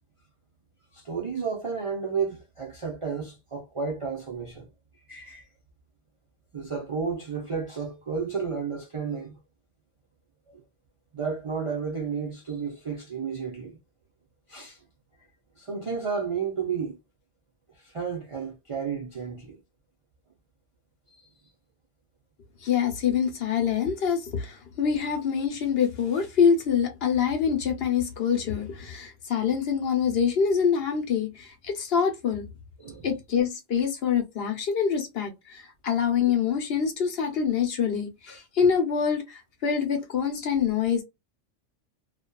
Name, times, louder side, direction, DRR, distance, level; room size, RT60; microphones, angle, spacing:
voice 1, 0.9-4.7 5.1-5.4 6.5-9.4 10.5-10.6 11.1-13.8 14.5-14.8 15.6-17.0 17.8-19.6 21.1-21.2 32.8-33.1, right 5 dB, 45° right, 0.4 m, -32 dB
voice 2, 22.6-32.5 33.0-41.0, left 7 dB, 60° left, 0.9 m, -25 dB
2.7 x 2.3 x 2.2 m
omnidirectional pair, 1.2 m